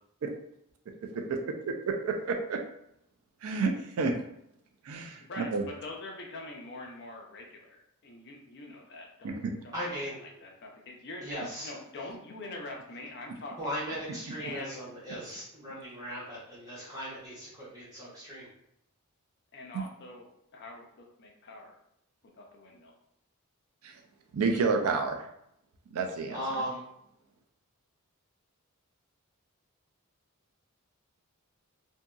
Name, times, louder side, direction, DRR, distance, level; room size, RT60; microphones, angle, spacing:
voice 1, 1.7-2.6 3.4-4.1 4.8-5.6 9.2-9.5 19.7-19.9 23.8-24.0 24.3-25.3 25.9-26.4, right 4 dB, 75° right, 3 dB, 0.4 m, -30 dB
voice 2, 5.3-9.3 9.6-9.7 10.0-11.4 11.6-13.7 14.4-14.8 19.5-20.3 20.5-21.7 22.4-22.9, left 2 dB, 50° left, 0 dB, 0.5 m, -44 dB
voice 3, 9.7-10.3 11.2-11.7 13.6-18.5 26.3-26.8, equal, 15° right, -9 dB, 1.2 m, -37 dB
2.8 x 2.6 x 2.3 m, 0.76 s
head